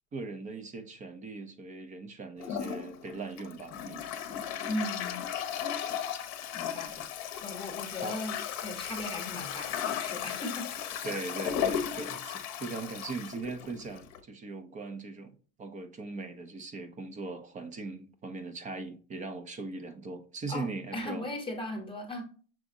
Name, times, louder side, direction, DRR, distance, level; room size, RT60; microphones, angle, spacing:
voice 1, 0.1-4.1 8.0-8.2 11.0-15.3 15.6-21.3, right 3 dB, 20° right, 0.6 m, -40 dB
Toilet flush, 2.4-14.2, left 9 dB, 40° left, 0.9 m, -36 dB
voice 2, 4.7-5.3 6.5-6.9 7.4-8.3 8.6-10.7 20.5-20.7 20.9-22.2, left 1 dB, 10° left, 1.0 m, -37 dB
6.0 x 3.4 x 2.6 m
hypercardioid pair, 115°, 42 cm